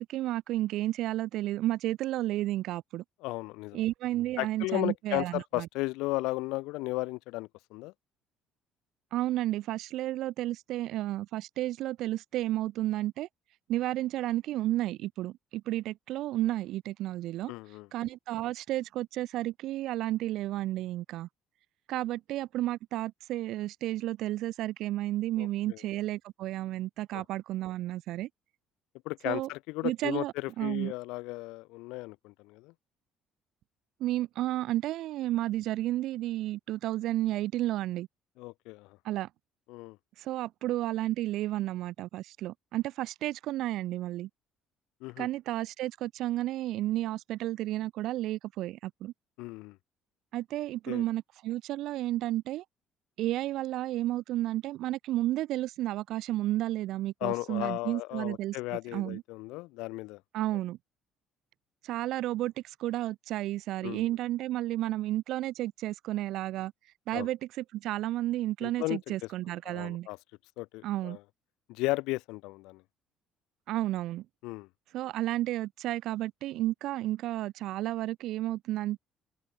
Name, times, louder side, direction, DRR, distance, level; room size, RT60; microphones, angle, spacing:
voice 1, 0.0-3.0 3.7-5.7 9.1-13.3 13.7-17.5 17.9-21.3 21.9-28.3 29.2-29.5 29.8-30.9 34.0-38.1 39.0-39.3 40.2-44.3 45.2-49.1 50.3-52.6 53.2-58.6 58.9-59.2 60.3-60.8 61.8-66.7 67.1-70.1 70.8-71.2 73.7-74.2 74.9-79.0, right 15 dB, 70° right, 0.9 m, -32 dB
voice 2, 3.2-3.8 4.4-7.9 17.5-17.9 25.4-25.8 27.1-27.2 29.0-32.7 38.4-39.0 39.7-40.0 45.0-45.3 49.4-49.8 50.9-51.0 57.2-60.2 63.8-64.1 67.1-67.3 68.6-69.1 69.7-70.2 70.6-71.2 71.7-72.8 74.4-74.7, left 22 dB, 85° left, 0.7 m, -35 dB
cardioid pair, 120°, 0 cm